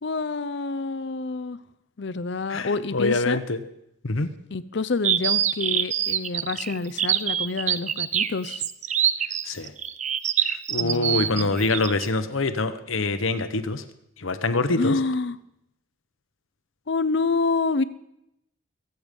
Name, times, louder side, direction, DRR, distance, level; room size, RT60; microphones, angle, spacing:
voice 1, 0.0-1.6 2.0-3.4 4.5-8.6 10.8-11.7 14.8-15.4 16.9-17.8, left 3 dB, 60° left, 15 dB, 0.6 m, -27 dB
voice 2, 2.5-3.6 4.0-4.3 9.4-9.7 10.5-13.8 14.2-14.9, left 3 dB, 80° left, 10 dB, 1.0 m, -25 dB
sound 1, 5.0-12.1, right 9 dB, 35° right, 0.5 m, -25 dB
23.0 x 8.0 x 5.3 m, 0.82 s
head